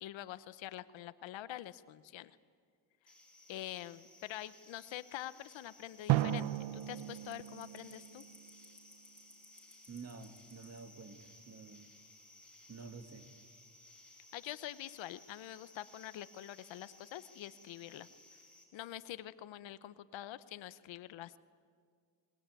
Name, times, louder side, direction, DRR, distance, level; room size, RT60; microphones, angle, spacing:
voice 1, 0.0-2.4 3.5-8.2 14.3-18.1 18.7-21.4, left 13 dB, 85° left, 15 dB, 0.9 m, -46 dB
sound 1, 3.1-18.6, left 2 dB, 5° left, 5.9 m, -59 dB
Drum, 6.1-8.8, right 14 dB, 80° right, 0.8 m, -35 dB
voice 2, 9.9-11.9 12.7-13.3, right 4 dB, 35° right, 8 dB, 1.9 m, -50 dB
25.0 x 21.0 x 9.1 m, 2.1 s
cardioid pair, 110°, 44 cm